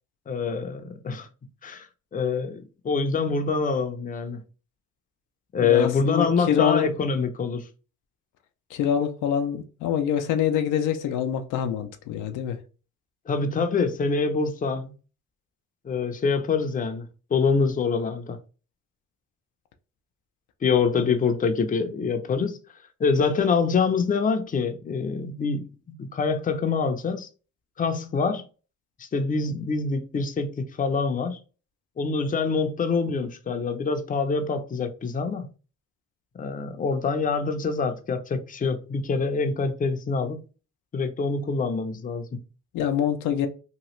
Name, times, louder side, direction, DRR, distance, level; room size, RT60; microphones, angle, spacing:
voice 1, 0.3-1.3 1.6-4.4 5.5-7.6 13.3-14.9 15.8-18.4 20.6-22.6 23.0-25.7 26.0-27.3 27.8-28.4 29.0-31.4 32.0-35.5 36.4-40.4 40.9-42.4, left 5 dB, 25° left, 0.5 m, -25 dB
voice 2, 5.6-6.9 8.7-12.6 21.0-21.1 42.7-43.5, left 9 dB, 85° left, 0.5 m, -25 dB
2.9 x 2.3 x 3.0 m
cardioid pair, 90°, 30 cm